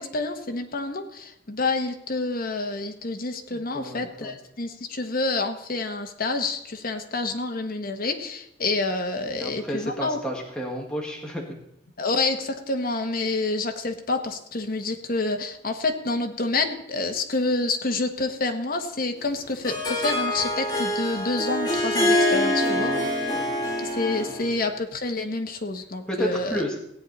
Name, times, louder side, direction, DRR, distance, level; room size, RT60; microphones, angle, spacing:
voice 1, 0.0-10.2 12.0-22.9 23.8-26.6, left 3 dB, 50° left, 5 dB, 1.2 m, -28 dB
voice 2, 3.5-4.4 9.3-11.4 22.7-23.1 23.3-23.6 26.1-26.8, equal, 5° left, -1 dB, 1.8 m, -32 dB
Harp, 19.2-24.6, left 1 dB, 25° left, 3.1 m, -25 dB
16.5 x 8.7 x 4.1 m, 0.76 s
head